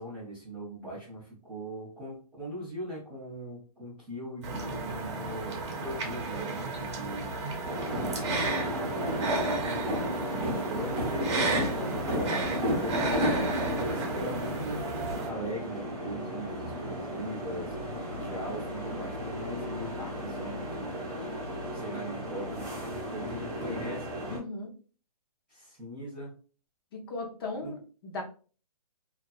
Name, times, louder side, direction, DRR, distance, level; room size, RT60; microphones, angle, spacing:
voice 1, 0.0-7.4 8.4-14.9 15.3-17.7 18.1-21.0 21.7-22.7 23.1-24.2 25.5-26.3 27.6-27.8, equal, 5° right, -12 dB, 0.3 m, -40 dB
sound 1, 4.4-15.3, right 2 dB, 45° right, 0.7 m, -33 dB
sound 2, 7.6-24.4, equal, 20° right, 0.7 m, -34 dB
voice 2, 24.3-24.7 26.9-28.2, left 2 dB, 40° left, 1 dB, 0.6 m, -38 dB
2.5 x 2.4 x 2.2 m, 0.39 s
hypercardioid pair, 165°, 20 cm